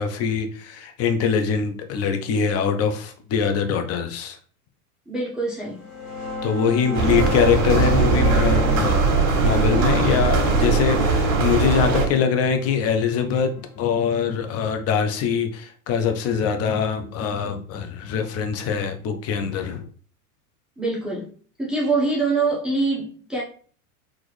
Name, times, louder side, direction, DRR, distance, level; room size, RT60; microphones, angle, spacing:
voice 1, 0.0-4.4 6.4-13.5 13.8-19.8, left 6 dB, 35° left, 0.8 m, -23 dB
voice 2, 5.1-5.9 20.8-21.3 21.6-23.4, right 3 dB, ahead, 1.0 m, -24 dB
sound 1, 5.7-15.0, left 3 dB, 75° left, 1.7 m, -34 dB
sound 2, 6.9-12.1, right 4 dB, 50° right, 1.6 m, -20 dB
4.3 x 3.0 x 3.2 m
hypercardioid pair, 115°, 45 cm